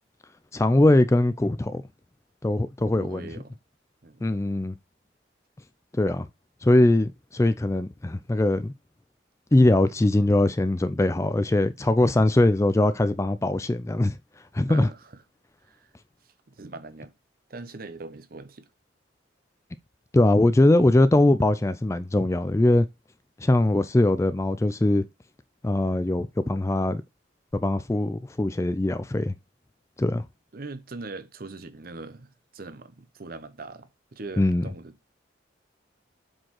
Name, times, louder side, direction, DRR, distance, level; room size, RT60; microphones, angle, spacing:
voice 1, 0.5-1.8 2.4-3.2 4.2-4.7 6.0-6.3 6.6-8.7 9.5-14.2 14.5-14.9 20.1-22.9 23.4-25.0 25.6-27.0 27.5-29.3 30.0-30.3 34.4-34.6, left 1 dB, 15° left, 0.3 m, -21 dB
voice 2, 2.8-3.6 4.0-4.2 14.7-15.2 15.6-15.9 16.2-17.1 17.5-18.7 30.5-34.9, right 3 dB, 50° right, 0.7 m, -41 dB
7.5 x 4.5 x 3.0 m
head